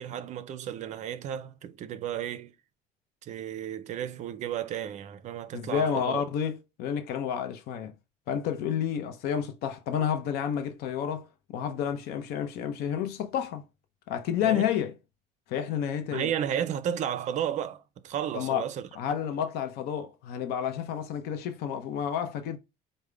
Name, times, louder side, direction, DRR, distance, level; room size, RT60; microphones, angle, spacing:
voice 1, 0.0-2.6 3.2-6.2 14.4-14.6 16.1-19.2, right 9 dB, 45° right, 0.5 m, -33 dB
voice 2, 5.5-7.9 8.3-13.6 14.1-14.9 15.5-16.3 18.3-18.6 19.0-22.6, left 8 dB, 70° left, 0.6 m, -30 dB
4.9 x 2.1 x 3.2 m
cardioid pair, 140°, 17 cm